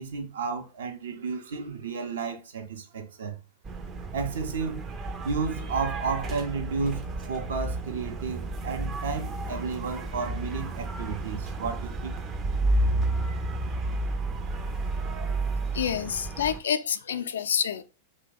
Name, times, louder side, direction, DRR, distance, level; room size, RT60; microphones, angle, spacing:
voice 1, 0.0-3.4 4.1-4.9 5.2-12.2, right 5 dB, 70° right, 0.6 m, -32 dB
sound 1, 3.7-16.6, right 2 dB, 25° right, 0.4 m, -31 dB
voice 2, 15.7-17.8, left 8 dB, 70° left, 0.3 m, -28 dB
2.8 x 2.0 x 3.8 m
figure-of-eight pair, 100°, 0 cm